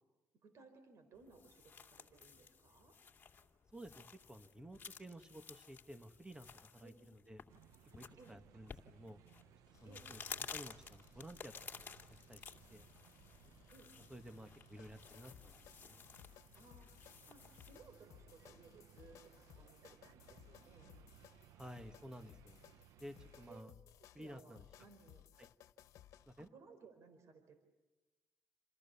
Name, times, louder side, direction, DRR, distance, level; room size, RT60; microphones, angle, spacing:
voice 1, 0.4-3.0 6.8-7.0 8.2-8.4 9.8-10.1 13.7-13.9 16.6-16.9 17.3-20.9 23.5-23.6 24.2-25.2 26.4-27.6, right 4 dB, 60° right, 8 dB, 4.5 m, -61 dB
sound 1, 1.1-17.8, left 6 dB, 30° left, 2.7 m, -54 dB
voice 2, 3.7-7.4 7.9-9.2 9.8-11.8 12.3-12.9 14.1-16.1 21.5-22.6 23.0-23.7 24.1-24.7 25.4-25.5 26.3-26.5, equal, 15° right, 10 dB, 1.7 m, -54 dB
sound 2, 7.5-23.6, right 11 dB, 90° right, 0.9 m, -64 dB
sound 3, 9.7-26.5, left 11 dB, 80° left, 1.4 m, -63 dB
28.5 x 28.5 x 7.1 m, 1.1 s
cardioid pair, 105°, 6 cm